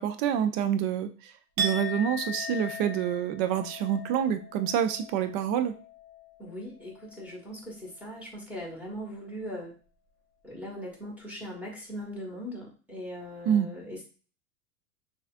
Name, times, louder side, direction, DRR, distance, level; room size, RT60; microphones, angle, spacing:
voice 1, 0.0-1.3 1.6-5.7 13.5-13.7, right 9 dB, 30° right, 10 dB, 0.5 m, -27 dB
Chink clink, 1.6-7.5 7.8-8.2, right 1 dB, 50° right, 0.9 m, -38 dB
voice 2, 6.4-9.7 10.4-14.0, equal, 5° right, -3 dB, 1.5 m, -40 dB
6.2 x 2.5 x 2.5 m, 0.37 s
figure-of-eight pair, 90°, 46 cm